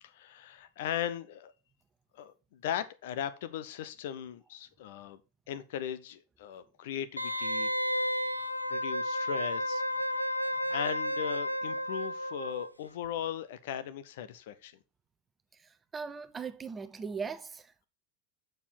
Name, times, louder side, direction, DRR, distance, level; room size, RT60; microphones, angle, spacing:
voice 1, 0.0-1.5 2.1-5.2 5.5-7.7 8.3-14.8, left 10 dB, 55° left, 0.8 m, -38 dB
Wind instrument woodwind instrument, 7.2-12.7 13.0-13.1, equal, 85° left, 0.5 m, -32 dB
voice 2, 15.9-17.7, right 5 dB, 15° right, 0.8 m, -38 dB
7.2 x 6.7 x 4.3 m
figure-of-eight pair, 90°, 0 cm